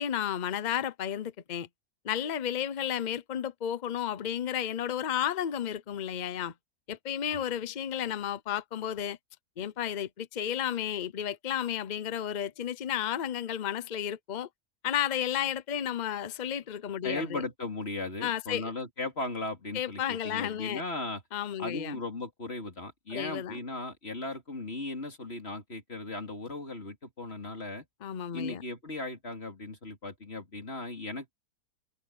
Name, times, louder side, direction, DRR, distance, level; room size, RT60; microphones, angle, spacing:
voice 1, 0.0-1.7 2.0-6.5 6.9-9.2 9.6-14.5 14.8-17.4 18.2-18.7 19.7-20.8 21.3-22.0 23.1-23.6 28.0-28.6, left 10 dB, 65° left, 0.4 m, -32 dB
voice 2, 17.0-21.2 21.6-27.9 28.3-31.3, left 2 dB, 35° left, 3.6 m, -37 dB
open air
omnidirectional pair, 1.8 m